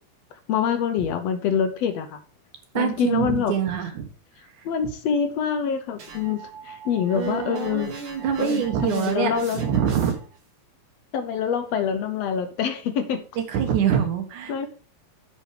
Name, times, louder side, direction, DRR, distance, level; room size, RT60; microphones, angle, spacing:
voice 1, 0.5-2.2 2.8-3.5 4.7-7.9 8.4-9.7 11.1-13.2 14.5-14.7, left 7 dB, 70° left, 8 dB, 1.7 m, -25 dB
voice 2, 2.7-4.1 7.1-10.2 13.4-14.7, right 8 dB, 85° right, 6 dB, 2.8 m, -25 dB
sound 1, 6.0-10.4, right 5 dB, 60° right, 2.9 m, -42 dB
8.2 x 5.6 x 4.8 m, 0.39 s
omnidirectional pair, 3.4 m